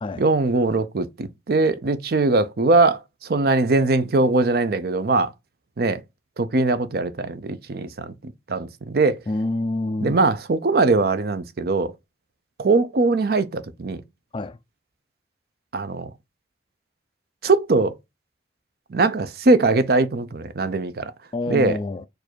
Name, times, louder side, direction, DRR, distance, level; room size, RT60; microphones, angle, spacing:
voice 1, 0.2-5.3 5.8-6.0 6.4-8.1 8.5-9.2 10.0-11.9 12.6-14.0 15.7-16.1 17.4-17.9 18.9-21.1 21.5-21.8, right 3 dB, 55° right, 0.5 m, -21 dB
voice 2, 9.3-10.2 14.3-14.6 21.3-22.1, left 2 dB, 30° left, 0.3 m, -27 dB
4.6 x 2.6 x 4.3 m
head